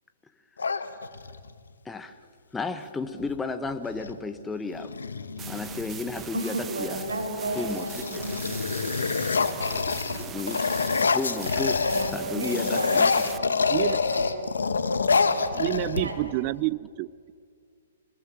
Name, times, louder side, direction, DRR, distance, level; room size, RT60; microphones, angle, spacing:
sound 1, 0.6-1.5 3.2-3.3 3.7-4.2 4.7-6.2 6.9-7.3 7.6-12.2 12.4-16.4, left 4 dB, 90° left, 1.5 m, -26 dB
voice 1, 1.8-2.2 2.5-4.9 5.5-7.0 7.6-8.1 10.3-10.6 11.1-11.8 12.1-13.1, left 4 dB, 10° left, 1.1 m, -33 dB
sound 2, 5.4-13.4, right 8 dB, 20° right, 1.1 m, -41 dB
voice 2, 6.3-9.4 9.7-10.5 11.4-16.2, right 2 dB, 85° right, 6.8 m, -35 dB
voice 3, 15.5-17.3, right 19 dB, 40° right, 0.6 m, -29 dB
26.0 x 20.5 x 7.7 m
hypercardioid pair, 135°, 0 cm